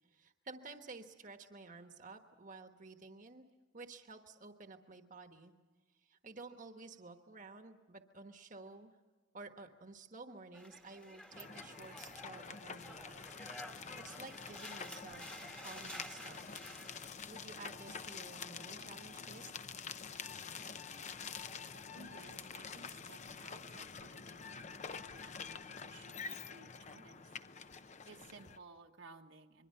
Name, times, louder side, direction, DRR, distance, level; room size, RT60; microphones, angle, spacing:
voice 1, 0.1-3.5 3.7-5.5 6.0-8.9 9.3-13.3 13.6-16.5 17.0-19.5, right 3 dB, 45° right, 6 dB, 1.3 m, -52 dB
sound 1, 10.5-17.1, equal, 5° left, 1.4 m, -51 dB
sound 2, 11.3-28.6, left 6 dB, 35° left, 0.7 m, -47 dB
voice 2, 21.9-27.4 28.0-29.7, right 3 dB, 75° right, 3 dB, 1.4 m, -58 dB
26.5 x 22.5 x 5.7 m, 1.3 s
head